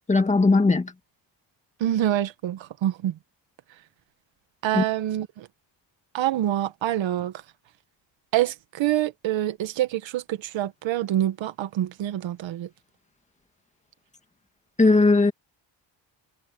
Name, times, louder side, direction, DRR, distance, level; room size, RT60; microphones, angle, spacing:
voice 1, 0.1-0.9 4.7-4.8 14.8-15.3, left 3 dB, 15° left, 1.7 m, -18 dB
voice 2, 1.8-3.2 4.6-5.5 6.1-7.3 8.3-12.7, right 12 dB, 70° right, 1.5 m, -26 dB
cardioid pair, 175°, 47 cm